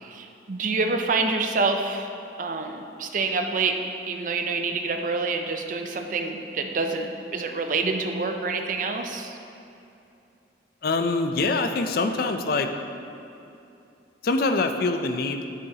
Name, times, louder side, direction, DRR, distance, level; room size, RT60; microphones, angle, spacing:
voice 1, 0.0-2.1 2.4-3.8 4.1-9.4, right 3 dB, 45° right, 5 dB, 0.5 m, -27 dB
voice 2, 10.8-12.7 14.2-15.5, left 3 dB, 50° left, 6 dB, 0.4 m, -24 dB
7.7 x 7.3 x 2.8 m, 2.7 s
head